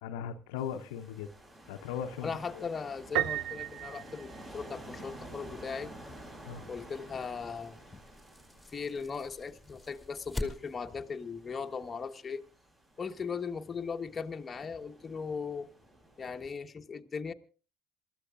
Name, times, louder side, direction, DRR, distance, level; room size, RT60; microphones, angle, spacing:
voice 1, 0.0-1.3 1.7-2.6 6.5-6.6, left 8 dB, 70° left, 0.9 m, -38 dB
sound 1, 0.6-16.5, right 1 dB, 30° right, 5.9 m, -52 dB
voice 2, 2.2-5.9 6.7-8.0 8.7-12.4 13.0-15.7 16.2-17.3, left 5 dB, 30° left, 1.2 m, -38 dB
Piano, 3.2-5.0, right 14 dB, 60° right, 0.6 m, -34 dB
sound 2, 5.4-11.0, left 1 dB, ahead, 3.0 m, -45 dB
28.0 x 13.5 x 2.5 m
hypercardioid pair, 65°, 0 cm